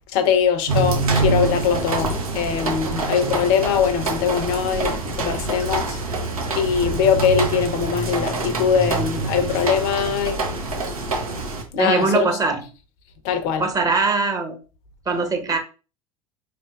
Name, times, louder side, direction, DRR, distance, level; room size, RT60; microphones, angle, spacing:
voice 1, 0.1-6.0 6.5-10.4 11.7-12.3 13.2-13.6, left 7 dB, 55° left, 0.6 m, -21 dB
sound 1, 0.7-11.6, right 3 dB, 85° right, 0.8 m, -25 dB
voice 2, 11.8-12.6 13.6-14.6 15.1-15.6, right 4 dB, 20° right, 0.8 m, -21 dB
4.2 x 3.4 x 2.4 m
figure-of-eight pair, 75°, 18 cm